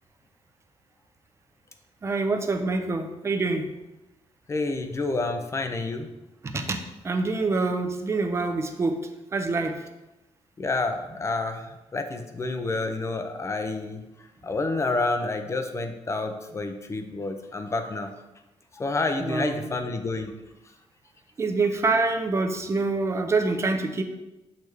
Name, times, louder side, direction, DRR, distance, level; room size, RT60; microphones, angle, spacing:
voice 1, 2.0-3.7 6.4-9.0 9.3-9.9 19.2-19.7 21.4-24.0, right 3 dB, 25° right, 5 dB, 0.5 m, -26 dB
voice 2, 4.5-6.1 10.6-14.0 14.4-18.1 18.8-20.3, left 3 dB, 25° left, 6 dB, 0.5 m, -29 dB
6.5 x 3.3 x 4.7 m, 0.99 s
wide cardioid pair, 170°, 12 cm